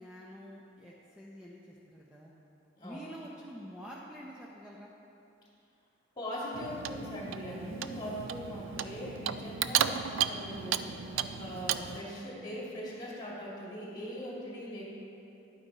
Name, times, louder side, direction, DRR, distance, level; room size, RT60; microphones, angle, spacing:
voice 1, 0.0-2.3 2.8-4.9, equal, 5° right, -5 dB, 0.7 m, -47 dB
voice 2, 6.2-14.9, equal, 25° left, -5 dB, 2.6 m, -40 dB
Clock, 6.5-12.0, right 9 dB, 80° right, 0.4 m, -34 dB
10.5 x 9.1 x 4.1 m, 2.8 s
head